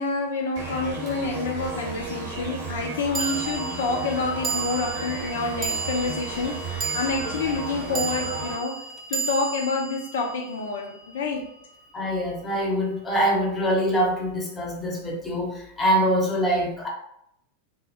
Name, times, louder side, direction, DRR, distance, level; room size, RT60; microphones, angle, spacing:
voice 1, 0.0-8.8 9.1-11.5, left 3 dB, 60° left, 1 dB, 0.3 m, -28 dB
sound 1, 0.5-8.5, right 2 dB, 55° right, 0.8 m, -34 dB
sound 2, 1.1-1.2 3.1-11.6, right 5 dB, 20° right, 0.3 m, -33 dB
voice 2, 11.9-16.9, equal, 15° left, -1 dB, 0.7 m, -24 dB
2.6 x 2.0 x 2.7 m, 0.75 s
figure-of-eight pair, 90°, 0 cm